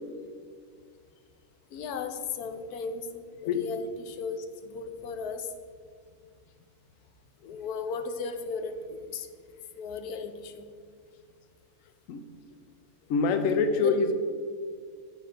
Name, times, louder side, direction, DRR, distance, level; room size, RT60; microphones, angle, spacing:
voice 1, 1.7-3.1 3.4-5.5 7.4-9.3 9.8-10.7 13.8-13.9, left 5 dB, 90° left, 8 dB, 1.2 m, -35 dB
voice 2, 13.1-14.1, left 4 dB, 70° left, 8 dB, 1.0 m, -25 dB
7.2 x 7.1 x 5.0 m, 2.1 s
omnidirectional pair, 1.6 m